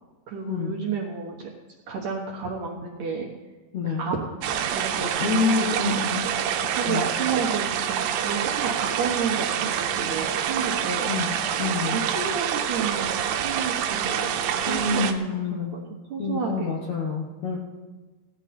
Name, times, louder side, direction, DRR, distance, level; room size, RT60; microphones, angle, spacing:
voice 1, 0.3-1.5 1.9-3.3 4.0-4.4 4.7-6.3 6.8-11.1 11.9-15.2 15.5-15.8 16.1-16.8, right 5 dB, 65° right, -2 dB, 2.1 m, -31 dB
voice 2, 3.7-4.1 5.2-6.3 6.6-7.1 11.1-12.0 14.7-15.7 16.2-17.6, left 4 dB, 65° left, -2 dB, 1.7 m, -27 dB
sound 1, 4.4-15.1, right 9 dB, 80° right, 2.9 m, -26 dB
17.0 x 11.5 x 4.3 m, 1.3 s
omnidirectional pair, 5.0 m